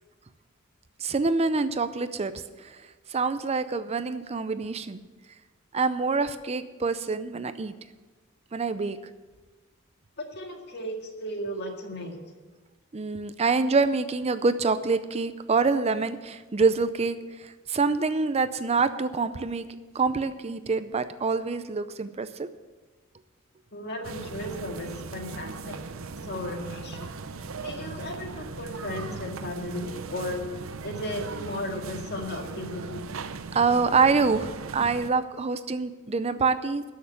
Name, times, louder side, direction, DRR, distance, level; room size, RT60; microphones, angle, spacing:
voice 1, 1.0-2.3 2.6-2.8 3.1-5.0 5.7-7.7 8.5-9.0 12.9-19.7 19.9-22.5 33.5-36.8, right 4 dB, 30° right, 12 dB, 0.5 m, -26 dB
voice 2, 10.2-12.2 23.7-25.8 26.2-27.1 27.6-30.5 30.8-33.0, left 1 dB, 55° left, 2 dB, 1.9 m, -35 dB
sound 1, 24.0-35.1, right 4 dB, 80° right, 0.6 m, -38 dB
12.5 x 6.6 x 8.5 m, 1.3 s
head